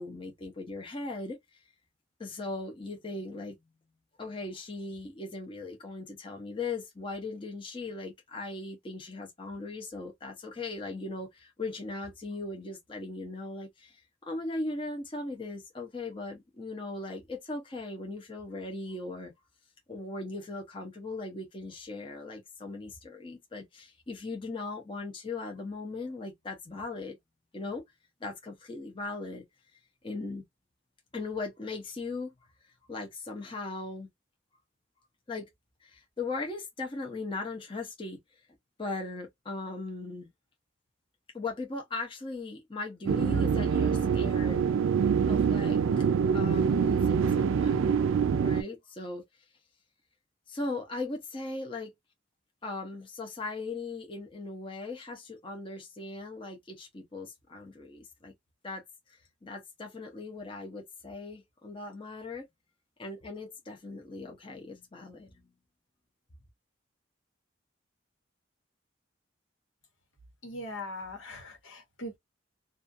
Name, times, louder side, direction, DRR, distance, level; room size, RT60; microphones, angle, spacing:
voice 1, 0.0-1.6 2.2-3.6 4.2-19.3 19.9-27.2 27.5-27.8 28.2-29.4 30.0-30.4 31.1-32.3 32.9-34.1 35.3-35.5 35.8-38.4 38.8-40.3 41.3-44.6 45.3-46.1 46.3-47.9 48.4-49.2 50.5-51.9 52.6-58.3 58.6-62.5 63.0-65.5, left 3 dB, 25° left, 0.6 m, -38 dB
sound 1, 43.1-48.6, right 6 dB, 85° right, 0.3 m, -25 dB
voice 2, 70.4-72.2, left 1 dB, 90° left, 1.2 m, -40 dB
2.4 x 2.4 x 2.5 m
head